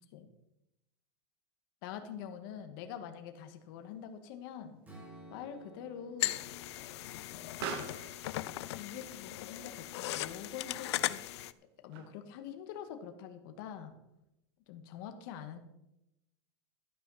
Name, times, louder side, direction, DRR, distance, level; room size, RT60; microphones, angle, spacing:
voice 1, 1.8-4.8 5.3-6.4 6.8-7.6 8.8-11.4 11.8-14.0 14.7-15.6, left 8 dB, 50° left, 7 dB, 1.6 m, -45 dB
Explosion, 3.4-12.4, right 7 dB, 60° right, 1.8 m, -49 dB
Strum, 4.8-9.0, right 2 dB, 10° right, 3.5 m, -56 dB
sound 1, 6.2-11.5, left 15 dB, 70° left, 0.6 m, -38 dB
13.0 x 12.0 x 4.1 m, 0.88 s
supercardioid pair, 165°, 15 cm